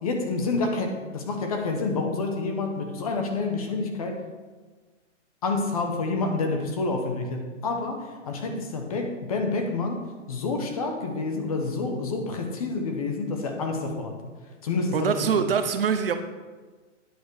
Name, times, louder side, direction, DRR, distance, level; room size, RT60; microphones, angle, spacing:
voice 1, 0.0-4.2 5.4-14.2 14.6-15.1, left 3 dB, 30° left, 4 dB, 0.9 m, -28 dB
voice 2, 14.9-16.2, right 7 dB, 50° right, 8 dB, 0.7 m, -24 dB
9.3 x 7.2 x 4.7 m, 1.3 s
hypercardioid pair, 170°, 37 cm